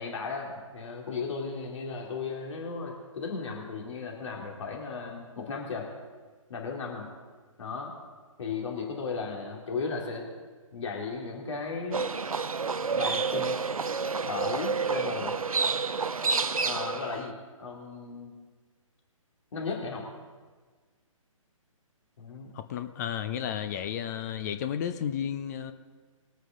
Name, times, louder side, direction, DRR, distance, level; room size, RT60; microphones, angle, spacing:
voice 1, 0.0-5.9 6.5-7.1 7.6-7.9 8.4-10.3 10.7-12.1 12.9-13.6 14.2-15.4 16.6-18.3 19.5-20.0 22.2-22.5, left 4 dB, 60° left, 0 dB, 2.4 m, -35 dB
Livestock farm animals working animals, 11.9-17.3, right 5 dB, 85° right, 0.6 m, -29 dB
voice 2, 22.5-25.7, left 9 dB, 30° left, 10 dB, 0.6 m, -32 dB
21.0 x 9.0 x 3.7 m, 1.4 s
figure-of-eight pair, 140°, 18 cm